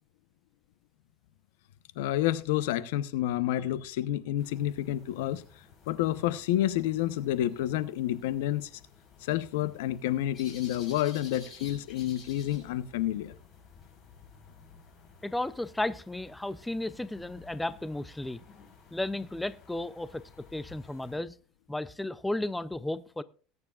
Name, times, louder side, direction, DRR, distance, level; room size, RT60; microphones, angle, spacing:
voice 1, 2.0-5.4 5.9-8.7 9.2-13.3, left 13 dB, 90° left, 0.8 m, -29 dB
sound 1, 4.4-21.2, left 5 dB, 35° left, 6.3 m, -54 dB
voice 2, 15.2-18.4 18.9-20.2 20.5-21.4 21.7-23.2, left 1 dB, 5° left, 0.5 m, -34 dB
19.5 x 9.6 x 2.4 m
supercardioid pair, 135°, 0 cm